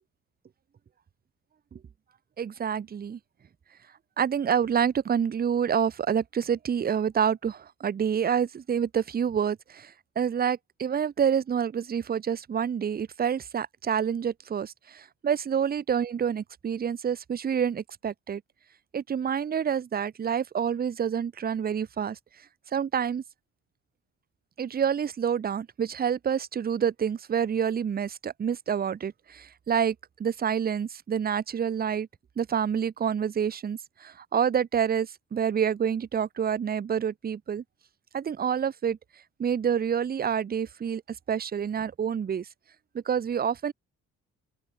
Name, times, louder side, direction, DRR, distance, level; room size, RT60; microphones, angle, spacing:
voice 1, 2.4-3.2 4.2-18.4 18.9-22.2 22.7-23.2 24.6-32.1 32.4-37.6 38.1-39.0 39.4-41.0 41.3-42.5 42.9-43.7, right 8 dB, 30° right, 0.7 m, -28 dB
open air
cardioid pair, 90°, 30 cm